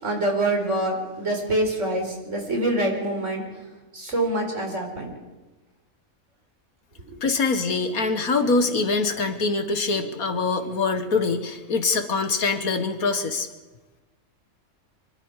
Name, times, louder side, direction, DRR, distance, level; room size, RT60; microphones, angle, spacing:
voice 1, 0.0-3.4 3.9-5.1 7.1-7.2, right 1 dB, 55° right, 1 dB, 4.9 m, -25 dB
voice 2, 7.2-13.5, left 4 dB, 90° left, 7 dB, 2.1 m, -24 dB
25.0 x 23.0 x 5.0 m, 1.2 s
omnidirectional pair, 1.5 m